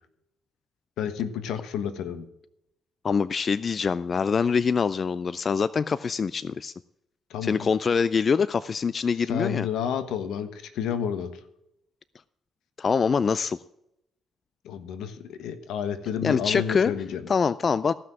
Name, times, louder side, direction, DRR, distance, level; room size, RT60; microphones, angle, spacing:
voice 1, 1.0-2.3 7.3-7.7 9.3-11.3 14.6-17.3, left 8 dB, 85° left, 10 dB, 1.3 m, -30 dB
voice 2, 3.0-6.7 7.4-9.7 12.8-13.6 16.2-16.9 17.3-17.9, left 5 dB, 40° left, 16 dB, 0.4 m, -24 dB
15.5 x 6.0 x 7.7 m, 0.83 s
cardioid pair, 90°, 0 cm